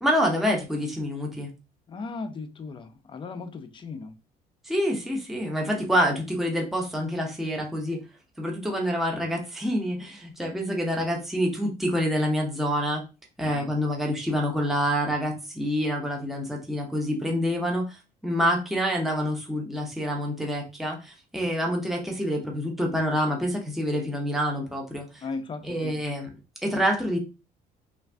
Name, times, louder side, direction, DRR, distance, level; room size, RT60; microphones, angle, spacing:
voice 1, 0.0-1.5 4.6-8.0 8.4-13.0 13.4-25.2 25.6-26.3 26.6-27.2, equal, ahead, 0 dB, 0.7 m, -27 dB
voice 2, 1.9-4.1 13.5-13.8 25.2-26.0, left 4 dB, 30° left, 8 dB, 0.5 m, -37 dB
2.5 x 2.3 x 3.3 m, 0.29 s
cardioid pair, 110°, 17 cm